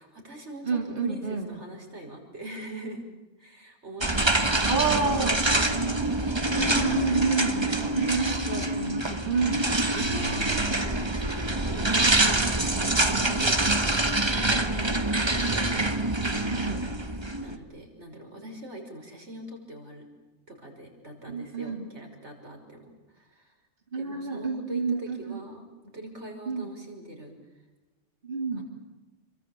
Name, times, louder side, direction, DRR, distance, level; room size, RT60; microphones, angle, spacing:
voice 1, 0.0-3.1 3.4-5.0 7.7-7.8 9.6-16.2 17.4-20.1 20.5-23.6 24.0-25.7 25.9-27.6 28.6-28.7, right 1 dB, 85° right, 2 dB, 6.4 m, -43 dB
voice 2, 0.6-1.5 4.6-5.4 6.6-9.6 16.4-16.8 21.3-21.8 23.9-25.4 26.5-26.7 28.2-28.6, right 4 dB, 50° right, 2 dB, 2.9 m, -29 dB
sound 1, 4.0-17.6, right 2 dB, 25° right, 1.7 m, -25 dB
28.5 x 23.5 x 8.8 m, 1.1 s
omnidirectional pair, 1.1 m